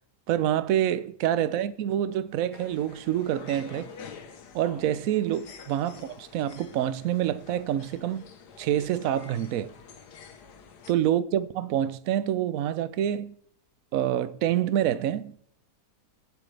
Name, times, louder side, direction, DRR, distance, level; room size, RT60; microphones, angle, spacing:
voice 1, 0.3-3.9 4.5-8.2 8.6-9.7 10.9-13.3 13.9-15.3, right 11 dB, 65° right, 1.0 m, -27 dB
sound 1, 2.5-10.9, left 6 dB, 80° left, 1.7 m, -47 dB
21.5 x 7.8 x 3.4 m
omnidirectional pair, 1.7 m